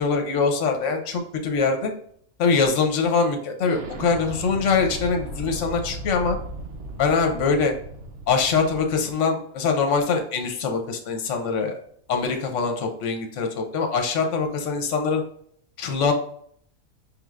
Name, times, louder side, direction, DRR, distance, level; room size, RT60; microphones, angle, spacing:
voice 1, 0.0-1.9 2.4-6.4 7.0-7.7 8.3-11.8 12.1-15.2 15.8-16.1, left 5 dB, 60° left, 4 dB, 1.0 m, -23 dB
Explosion, 3.6-9.1, right 1 dB, 55° right, 1.0 m, -36 dB
5.2 x 3.2 x 2.4 m, 0.64 s
omnidirectional pair, 1.6 m